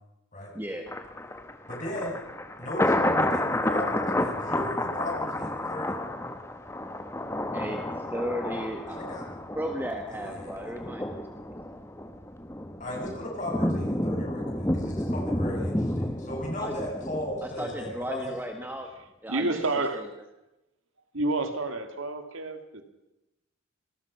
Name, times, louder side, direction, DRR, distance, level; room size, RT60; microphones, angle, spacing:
voice 1, 0.5-0.9 7.5-9.0 9.5-11.2 16.6-16.7 17.6-18.9 19.2-19.6 19.9-20.0, equal, 10° right, 4 dB, 1.5 m, -34 dB
Thunder, 0.9-18.0 18.4-18.5, left 1 dB, 15° left, 1.2 m, -30 dB
voice 2, 1.7-2.2 2.6-6.0 8.9-9.3 10.1-10.7 12.8-18.3, left 1 dB, 35° left, -1 dB, 7.1 m, -36 dB
voice 3, 19.3-20.1 21.1-22.8, right 2 dB, 75° right, 8 dB, 2.3 m, -29 dB
27.0 x 19.5 x 5.8 m, 0.93 s
head